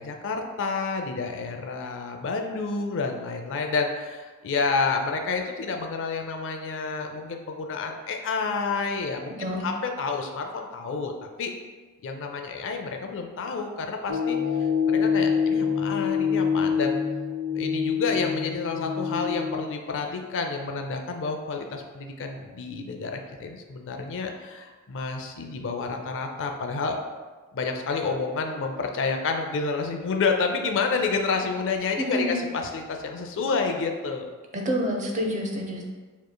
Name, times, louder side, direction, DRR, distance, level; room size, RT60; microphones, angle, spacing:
voice 1, 0.0-11.5 12.0-14.4 14.9-17.0 17.6-27.0 27.5-34.3, left 4 dB, 60° left, 4 dB, 0.5 m, -29 dB
sound 1, 14.1-19.6, left 6 dB, 70° right, 0.9 m, -25 dB
voice 2, 32.0-32.4 34.5-35.8, equal, 35° right, 1 dB, 0.7 m, -28 dB
7.1 x 3.1 x 2.2 m, 1.3 s
head